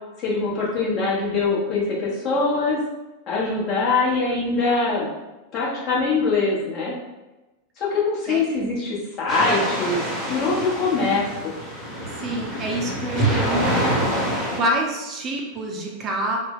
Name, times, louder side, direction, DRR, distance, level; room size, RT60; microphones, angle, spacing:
voice 1, 0.2-2.8 3.3-5.1 5.5-6.9 7.8-11.5, left 3 dB, 35° left, -5 dB, 1.0 m, -23 dB
sound 1, 9.3-14.6, right 1 dB, 5° left, 1.1 m, -26 dB
voice 2, 12.2-13.9 14.5-16.4, right 1 dB, 30° right, 0 dB, 0.5 m, -27 dB
2.6 x 2.1 x 3.8 m, 1.1 s
figure-of-eight pair, 90°, 0 cm